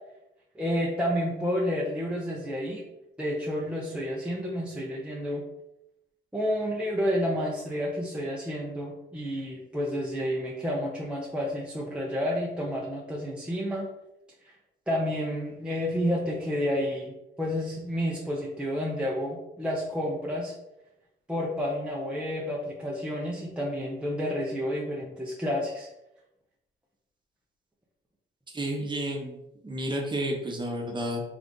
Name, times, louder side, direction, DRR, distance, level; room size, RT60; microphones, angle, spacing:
voice 1, 0.5-2.9 3.2-5.4 6.3-13.9 14.9-20.5 21.3-25.9, equal, 5° right, -3 dB, 0.6 m, -30 dB
voice 2, 28.5-29.4 29.6-31.2, right 1 dB, 25° right, 0 dB, 1.0 m, -31 dB
3.5 x 2.5 x 3.8 m, 0.88 s
cardioid pair, 90°, 20 cm